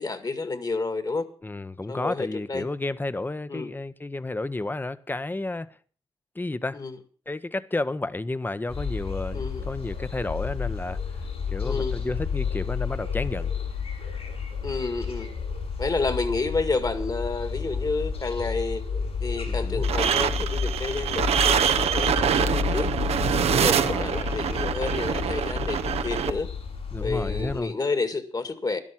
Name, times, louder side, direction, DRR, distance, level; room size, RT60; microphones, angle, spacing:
voice 1, 0.0-1.2 1.9-2.7 3.5-3.7 6.7-7.0 9.3-9.7 11.6-12.0 14.6-15.4 15.8-18.8 19.2-22.9 23.5-26.5 27.0-28.8, left 3 dB, 40° left, 1.9 m, -30 dB
voice 2, 1.4-5.7 6.4-6.8 7.3-11.0 11.5-13.5 19.5-19.8 23.5-24.1 26.9-27.7, left 2 dB, 20° left, 0.8 m, -31 dB
sound 1, 8.7-27.6, left 5 dB, 70° left, 7.4 m, -31 dB
sound 2, 19.8-26.3, right 8 dB, 75° right, 0.8 m, -25 dB
12.0 x 12.0 x 5.8 m
cardioid pair, 60°, 11 cm